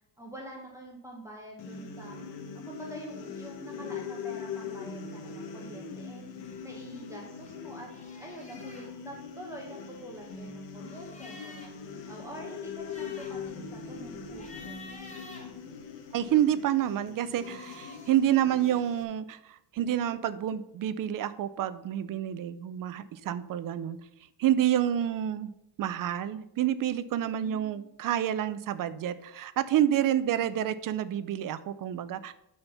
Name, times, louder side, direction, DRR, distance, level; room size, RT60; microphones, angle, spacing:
voice 1, 0.2-2.2 2.5-6.2 6.6-7.9 8.2-14.8 27.3-27.8, right 1 dB, 5° right, -2 dB, 1.0 m, -46 dB
sound 1, 1.6-19.0, left 6 dB, 75° left, 1.3 m, -41 dB
sound 2, 6.4-7.6 7.9-8.9 9.7-11.9 12.2-12.3 12.7-16.2 17.2-18.3, left 2 dB, 15° left, 1.6 m, -51 dB
voice 2, 16.1-24.0 24.4-25.5 25.8-32.3, right 11 dB, 50° right, 14 dB, 0.6 m, -28 dB
11.5 x 4.4 x 5.6 m, 0.83 s
cardioid pair, 175°, 43 cm